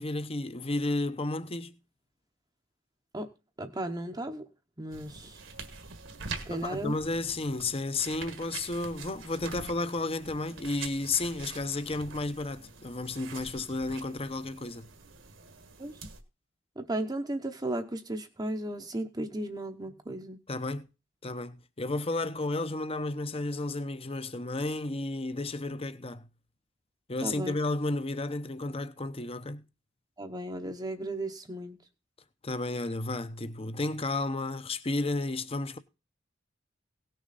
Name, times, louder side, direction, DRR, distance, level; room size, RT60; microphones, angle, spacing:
voice 1, 0.0-1.7 6.5-14.9 20.5-20.9 21.2-26.3 27.1-29.6 32.4-35.8, left 2 dB, 30° left, 0.9 m, -32 dB
voice 2, 3.6-4.5 4.8-5.4 6.5-7.0 15.8-16.0 16.8-20.4 27.2-27.6 30.2-31.8, right 1 dB, 20° right, 0.9 m, -35 dB
sound 1, 4.9-16.2, right 4 dB, 65° right, 1.7 m, -45 dB
17.5 x 6.6 x 4.1 m
head